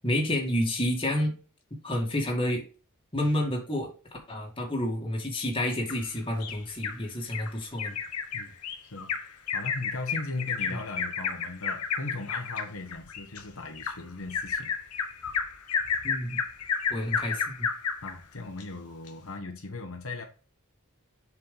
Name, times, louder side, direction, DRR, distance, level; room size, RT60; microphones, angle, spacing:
voice 1, 0.0-1.3 1.8-2.6 3.1-3.9 4.3-7.9 10.7-10.8 16.0-16.4 16.9-17.7, left 1 dB, 25° left, 2.2 m, -29 dB
Bird vocalization bird call bird song, 5.9-7.0 7.3-7.5 7.8-18.1 18.6-18.7 19.1-19.2, left 6 dB, 85° left, 1.2 m, -31 dB
voice 2, 9.5-14.7 18.0-20.2, left 3 dB, 65° left, 1.6 m, -38 dB
7.2 x 5.1 x 3.9 m
head